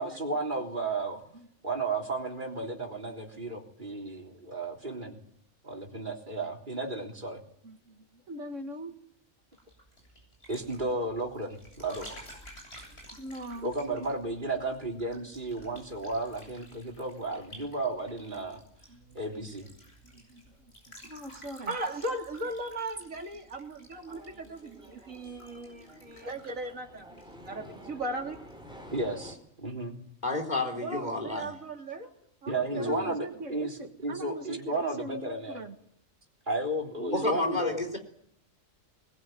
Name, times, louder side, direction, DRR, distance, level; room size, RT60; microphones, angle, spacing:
voice 1, 0.0-1.2 1.6-5.2 5.6-7.4 10.5-12.1 13.6-18.6 19.2-19.7 24.1-24.2 26.2-26.3 28.9-29.9 32.5-33.7 34.0-35.6 36.5-37.8, right 2 dB, 35° right, 1 dB, 3.8 m, -33 dB
voice 2, 7.6-9.0 12.9-14.1 18.9-19.7 20.0-21.8 24.9-25.3 26.3-26.4 27.1-27.2 32.5-35.8, right 2 dB, 65° right, 5 dB, 2.3 m, -42 dB
sound 1, 9.5-27.9 28.2-28.6, equal, 50° left, 8.0 m, -53 dB
voice 3, 21.7-27.1 27.5-28.4 30.8-32.1 32.4-33.0 37.0-37.3, right 1 dB, 90° right, 3 dB, 3.2 m, -37 dB
sound 2, 23.9-29.3, equal, 5° right, 4.5 m, -50 dB
voice 4, 30.2-31.5 32.7-33.1 37.1-38.0, left 2 dB, 35° left, 3 dB, 3.8 m, -31 dB
22.0 x 21.0 x 9.3 m, 0.69 s
omnidirectional pair, 1.4 m